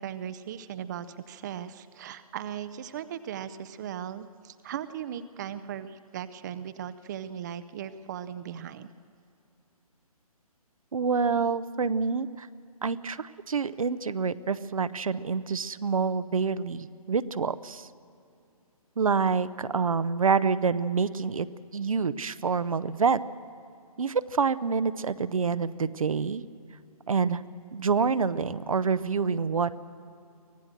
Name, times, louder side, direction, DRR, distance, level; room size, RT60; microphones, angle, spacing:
voice 1, 0.0-8.9, right 9 dB, 30° right, 13 dB, 0.6 m, -38 dB
voice 2, 10.9-12.5 12.8-17.9 19.0-21.5 21.7-23.2 24.0-26.4 27.1-27.4 27.7-29.8, right 5 dB, 65° right, 14 dB, 0.7 m, -27 dB
24.0 x 17.0 x 6.6 m, 2.5 s
figure-of-eight pair, 135°, 19 cm